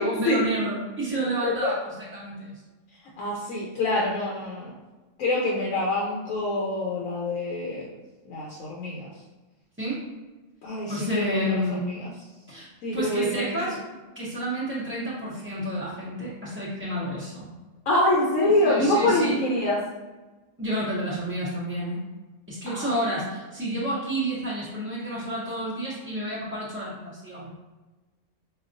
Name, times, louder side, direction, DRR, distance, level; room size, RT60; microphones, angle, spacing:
voice 1, 0.0-2.5 9.8-10.0 10.9-11.9 12.5-13.8 14.2-17.5 18.4-19.3 20.6-22.0 22.5-27.5, right 1 dB, 15° right, -9 dB, 0.5 m, -30 dB
voice 2, 3.2-4.7 5.2-7.9 8.3-9.1 10.6-11.6 11.9-12.1 12.8-13.6 17.9-19.8 22.7-22.9, left 1 dB, 90° left, -3 dB, 1.1 m, -25 dB
5.0 x 2.3 x 2.5 m, 1.2 s
omnidirectional pair, 1.3 m